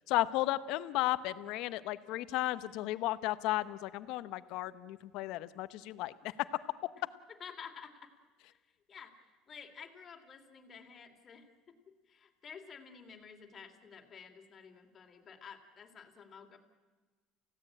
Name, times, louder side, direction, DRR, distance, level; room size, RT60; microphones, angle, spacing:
voice 1, 0.1-6.3 6.8-6.9, left 16 dB, 70° left, 14 dB, 1.0 m, -34 dB
voice 2, 7.4-8.1 8.9-9.1 9.5-16.6, left 6 dB, 35° left, 3 dB, 3.1 m, -51 dB
29.0 x 16.5 x 8.8 m, 1.3 s
supercardioid pair, 115°, 0 cm